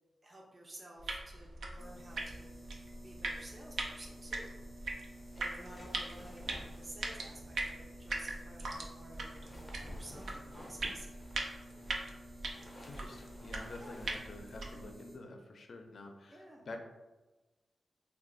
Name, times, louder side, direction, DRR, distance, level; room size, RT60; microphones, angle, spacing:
voice 1, 0.2-2.5 3.0-4.6 5.3-11.1 13.8-14.0 16.3-16.8, right 1 dB, 30° right, -2 dB, 0.5 m, -53 dB
sound 1, 1.0-14.9, right 2 dB, 85° right, 0.4 m, -42 dB
sound 2, 1.8-15.2, equal, 70° right, 0.9 m, -53 dB
sound 3, 5.0-7.1 9.3-14.2, left 1 dB, 20° left, 0.5 m, -53 dB
voice 2, 12.8-16.8, left 2 dB, 65° left, 4 dB, 0.4 m, -48 dB
2.4 x 2.2 x 3.7 m, 1.1 s
wide cardioid pair, 100°, 0 cm